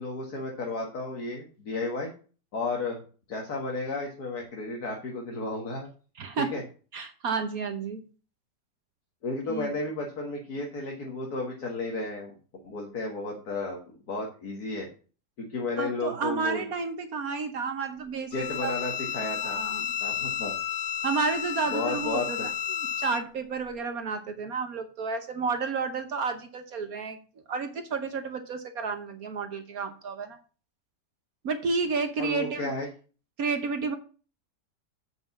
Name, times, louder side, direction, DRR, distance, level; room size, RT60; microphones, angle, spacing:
voice 1, 0.0-2.1 2.5-5.9 6.4-6.6 9.2-14.9 15.4-16.6 18.3-19.6 20.0-20.6 21.7-22.5 32.2-32.9, left 2 dB, 65° left, 0 dB, 2.2 m, -33 dB
voice 2, 6.2-6.5 6.9-8.1 9.5-9.7 15.8-18.7 19.4-19.9 21.0-27.2 27.5-30.4 31.4-32.7 33.4-33.9, right 4 dB, 60° right, 7 dB, 1.5 m, -31 dB
Bowed string instrument, 18.3-23.2, left 10 dB, 80° left, 1.2 m, -32 dB
8.0 x 5.4 x 7.2 m, 0.37 s
omnidirectional pair, 1.8 m